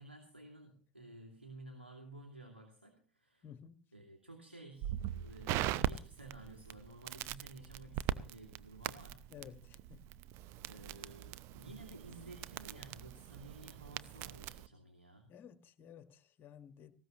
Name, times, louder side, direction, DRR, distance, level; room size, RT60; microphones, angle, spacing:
voice 1, 0.0-3.4 3.9-9.3 10.7-15.3, right 2 dB, 90° right, 2 dB, 2.5 m, -53 dB
voice 2, 3.4-3.7 9.3-10.0 15.3-16.9, left 8 dB, 35° left, 10 dB, 1.7 m, -54 dB
Crackle, 4.8-14.7, right 13 dB, 45° right, 0.7 m, -41 dB
18.5 x 17.0 x 3.0 m, 0.41 s
figure-of-eight pair, 80°, 6 cm